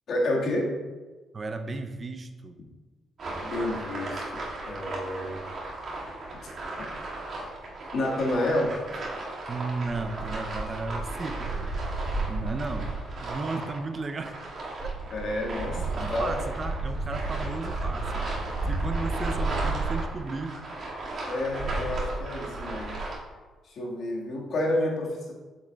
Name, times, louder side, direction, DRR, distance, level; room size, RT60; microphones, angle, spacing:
voice 1, 0.1-0.7 3.4-5.4 7.9-8.7 15.1-16.5 21.3-23.0 23.6-25.3, left 1 dB, 60° left, -2 dB, 1.7 m, -29 dB
voice 2, 1.3-2.6 9.5-14.4 14.8-14.9 15.8-18.3 18.7-20.6, right 3 dB, 35° right, 8 dB, 0.5 m, -35 dB
sound 1, 3.2-23.2, right 2 dB, 55° right, 2.0 m, -33 dB
7.8 x 7.1 x 2.3 m, 1.3 s
cardioid pair, 90°, 0 cm